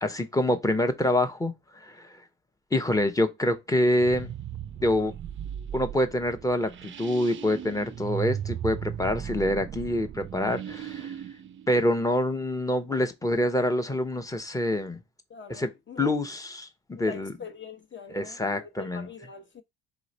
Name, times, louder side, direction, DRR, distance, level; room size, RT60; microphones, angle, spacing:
voice 1, 0.0-1.5 1.8-2.1 2.7-4.3 4.8-5.1 5.7-11.1 11.7-15.0 15.6-15.7 16.0-17.3 18.1-19.1, left 1 dB, 10° left, 0.9 m, -26 dB
sound 1, 4.0-12.6, right 9 dB, 35° right, 0.5 m, -37 dB
voice 2, 15.3-16.2 16.9-19.6, left 6 dB, 30° left, 1.1 m, -43 dB
4.3 x 3.0 x 4.0 m
hypercardioid pair, 65°, 37 cm